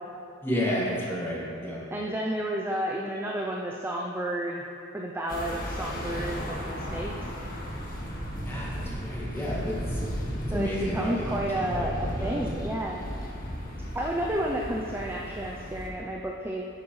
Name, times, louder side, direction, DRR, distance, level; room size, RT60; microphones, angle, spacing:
voice 1, 0.4-1.8 8.5-10.0 10.5-11.4 11.7-12.4, equal, 10° left, -7 dB, 1.9 m, -31 dB
voice 2, 1.9-4.7 4.9-7.3 10.5-13.1 13.9-16.6, right 1 dB, 10° right, -1 dB, 0.4 m, -31 dB
sound 1, 5.3-15.9, equal, 40° left, 1.4 m, -35 dB
10.5 x 8.3 x 3.2 m, 2.8 s
head